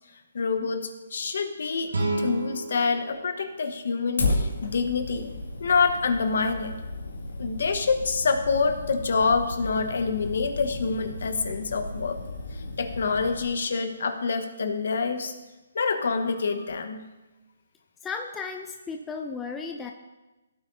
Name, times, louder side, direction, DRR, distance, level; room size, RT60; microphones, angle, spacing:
voice 1, 0.3-5.3 5.6-6.7 7.4-12.2 12.8-15.3 15.7-17.1, left 4 dB, 65° left, 7 dB, 1.2 m, -26 dB
sound 1, 1.9-4.9, right 2 dB, 85° right, 2.3 m, -32 dB
Fire, 4.2-13.4, left 2 dB, 85° left, 2.2 m, -34 dB
voice 2, 18.0-19.9, left 4 dB, 10° left, 3 dB, 0.5 m, -34 dB
16.0 x 8.7 x 2.7 m, 1.1 s
hypercardioid pair, 155°, 0 cm